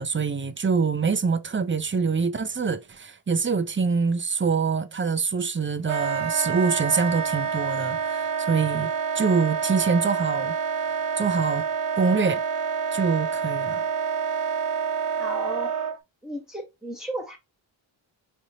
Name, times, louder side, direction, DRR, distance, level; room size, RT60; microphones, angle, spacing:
voice 1, 0.0-10.6 11.2-11.6 12.0-12.4 12.9-13.9, right 5 dB, 25° right, 0.4 m, -25 dB
Wind instrument woodwind instrument, 5.9-16.0, right 6 dB, 80° right, 0.6 m, -27 dB
voice 2, 15.2-15.7 16.2-17.4, right 1 dB, ahead, 1.2 m, -34 dB
4.2 x 2.8 x 2.7 m
wide cardioid pair, 55°, 50 cm